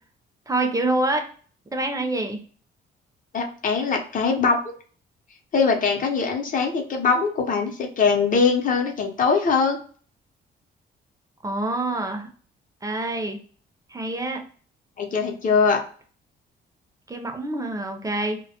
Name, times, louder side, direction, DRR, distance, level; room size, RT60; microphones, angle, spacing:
voice 1, 0.5-1.3 1.7-2.4 11.4-12.3 12.8-13.4 13.9-14.4 17.1-18.4, right 2 dB, 15° right, 5 dB, 0.5 m, -26 dB
voice 2, 3.3-4.7 5.5-9.8 15.0-15.8, left 5 dB, 45° left, 3 dB, 0.6 m, -22 dB
2.1 x 2.1 x 2.7 m, 0.43 s
cardioid pair, 90°, 20 cm